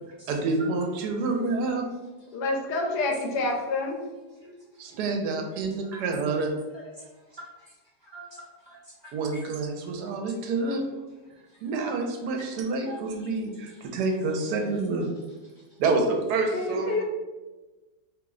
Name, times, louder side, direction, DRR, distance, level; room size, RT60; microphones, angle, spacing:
voice 1, 0.3-1.9 4.8-6.5 9.1-10.8 11.6-15.1 15.8-17.0, right 3 dB, 80° right, 3 dB, 1.1 m, -28 dB
voice 2, 2.3-4.0 16.5-17.0, left 2 dB, 85° left, 0 dB, 1.2 m, -28 dB
voice 3, 4.3-5.0 5.9-6.0 6.4-6.5 6.7-9.5 9.8-9.9 11.3-11.7 12.4-12.6 12.8-13.8 15.5-15.8, equal, 25° right, -8 dB, 0.6 m, -48 dB
3.0 x 2.0 x 3.5 m, 1.2 s
omnidirectional pair, 1.7 m